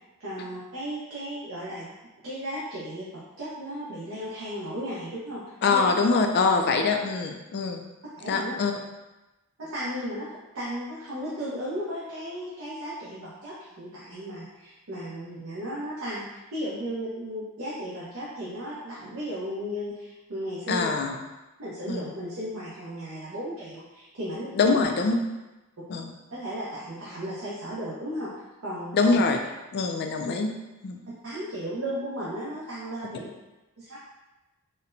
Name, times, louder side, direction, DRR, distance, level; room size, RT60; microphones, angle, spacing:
voice 1, 0.2-1.9 2.2-5.4 5.7-5.8 8.2-8.5 9.6-10.3 10.5-20.9 21.6-24.8 26.3-28.3 28.6-29.2 31.2-33.3 33.8-34.0, equal, 65° right, -9 dB, 0.8 m, -35 dB
voice 2, 5.6-7.8 8.3-8.7 20.7-21.2 21.9-22.1 24.5-25.1 25.9-26.1 28.9-29.4 29.7-30.5 30.8-31.0, left 4 dB, 50° left, 4 dB, 0.3 m, -24 dB
4.2 x 2.1 x 2.5 m, 1.0 s
head